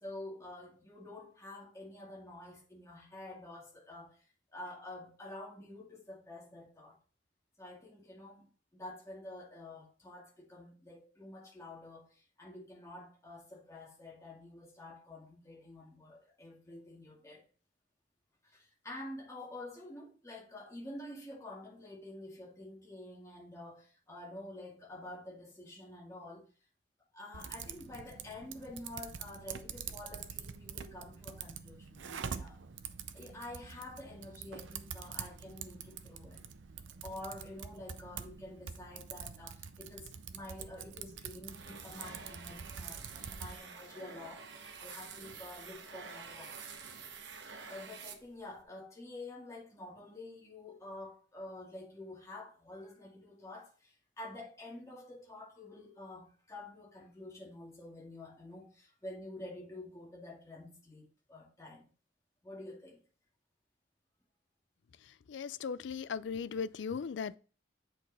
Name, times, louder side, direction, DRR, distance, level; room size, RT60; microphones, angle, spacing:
voice 1, 0.0-4.2 4.5-7.0 7.6-17.4 18.4-26.5 27.1-32.6 33.1-36.4 37.0-46.8 47.7-61.9 62.4-63.0, left 1 dB, 15° left, 2.1 m, -48 dB
Typing, 27.3-43.6, right 7 dB, 85° right, 0.6 m, -46 dB
sound 1, 41.5-48.6, right 5 dB, 70° right, 1.0 m, -49 dB
voice 2, 65.3-67.4, left 6 dB, 70° left, 0.4 m, -37 dB
8.0 x 4.7 x 3.5 m
head